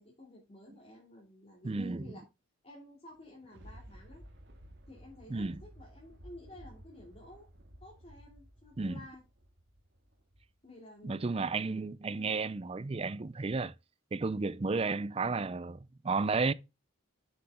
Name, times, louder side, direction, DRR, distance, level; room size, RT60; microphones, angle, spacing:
voice 1, 0.0-2.2 2.6-4.2 4.9-7.5 7.8-9.2 10.6-11.3 12.1-12.3, left 1 dB, 30° left, 2.8 m, -52 dB
voice 2, 1.6-2.1 5.3-5.6 8.8-9.0 11.0-13.7 14.1-16.5, right 4 dB, 30° right, 0.4 m, -33 dB
Thunder, 3.1-10.6 11.1-11.2, equal, 55° right, 1.9 m, -54 dB
7.8 x 6.9 x 3.7 m
head